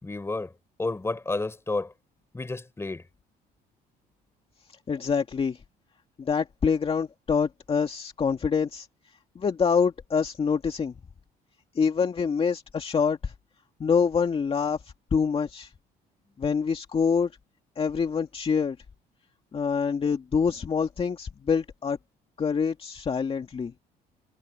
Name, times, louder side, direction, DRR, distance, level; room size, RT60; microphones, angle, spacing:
voice 1, 0.0-0.5 0.8-1.9 2.3-3.0, left 3 dB, 15° left, 3.7 m, -31 dB
voice 2, 4.9-5.6 6.2-8.9 9.4-10.9 11.8-13.3 13.8-14.8 15.1-15.7 16.4-17.3 17.8-18.8 19.5-22.0 22.4-23.7, left 6 dB, 35° left, 2.1 m, -26 dB
cardioid pair, 110°, 17 cm